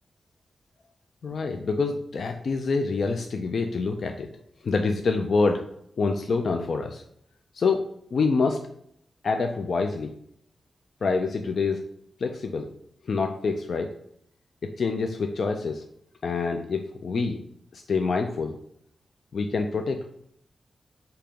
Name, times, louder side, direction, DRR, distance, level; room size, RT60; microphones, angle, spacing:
voice 1, 1.2-4.3 4.6-5.7 6.0-7.0 7.5-7.8 8.1-8.7 9.2-10.1 11.0-11.8 12.2-12.7 13.1-13.9 14.8-15.8 16.2-17.4 17.7-18.5 19.3-20.1, left 4 dB, 60° left, 4 dB, 0.3 m, -26 dB
5.1 x 2.8 x 3.4 m, 0.70 s
wide cardioid pair, 170°, 0 cm